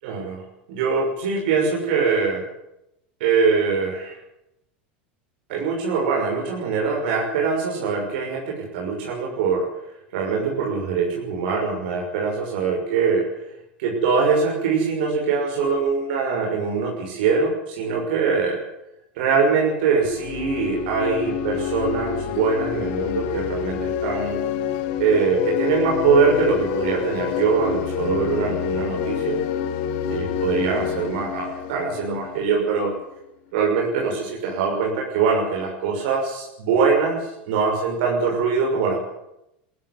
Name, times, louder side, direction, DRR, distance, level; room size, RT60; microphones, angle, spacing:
voice 1, 0.0-0.4 0.7-2.4 3.2-4.2 5.5-9.7 10.1-13.2 13.8-18.6 19.2-24.4 25.0-29.4 30.1-32.9 33.5-39.0, right 5 dB, 70° right, 0 dB, 6.1 m, -23 dB
sound 1, 20.0-32.7, left 9 dB, 65° left, 2.3 m, -27 dB
21.0 x 15.5 x 9.7 m, 0.85 s
hypercardioid pair, 100°, 6 cm